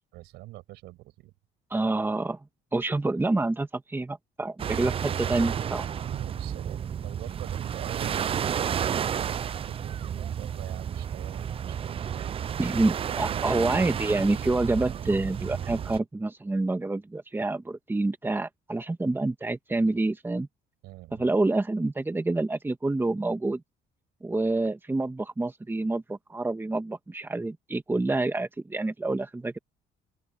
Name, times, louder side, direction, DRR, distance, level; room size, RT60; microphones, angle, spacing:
voice 1, 0.1-1.3 5.8-12.4 13.1-13.7 20.8-21.3, right 18 dB, 90° right, 6.4 m, -44 dB
voice 2, 1.7-2.4 2.7-5.8 12.6-20.5 21.1-23.6 24.2-29.6, right 2 dB, 10° right, 1.7 m, -27 dB
sound 1, 4.6-16.0, right 8 dB, 35° right, 0.4 m, -31 dB
open air
cardioid pair, 110°, 17 cm